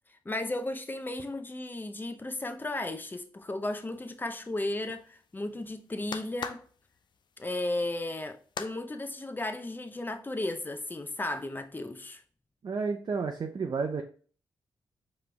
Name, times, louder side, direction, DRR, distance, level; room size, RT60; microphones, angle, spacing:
voice 1, 0.2-6.6 7.4-12.2, left 2 dB, 20° left, 0.7 m, -35 dB
sound 1, 3.6-8.7, left 6 dB, 60° left, 0.5 m, -44 dB
voice 2, 12.6-14.0, right 5 dB, 55° right, 0.6 m, -31 dB
4.9 x 3.2 x 3.4 m
cardioid pair, 60°, 9 cm